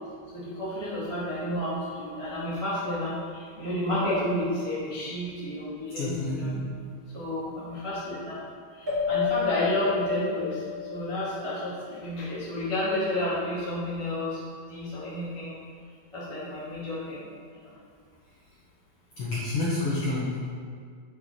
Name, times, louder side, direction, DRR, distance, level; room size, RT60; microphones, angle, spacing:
voice 1, 0.3-6.6 7.1-8.4 8.7-14.4 14.7-15.5 16.1-17.2 17.5-17.7, left 1 dB, 40° right, -10 dB, 0.4 m, -31 dB
voice 2, 6.0-6.6 19.2-20.3, left 2 dB, 70° left, -8 dB, 1.4 m, -28 dB
sound 1, 8.9-11.8, left 9 dB, 25° right, 1.2 m, -31 dB
8.4 x 5.3 x 4.2 m, 2.1 s
omnidirectional pair, 4.3 m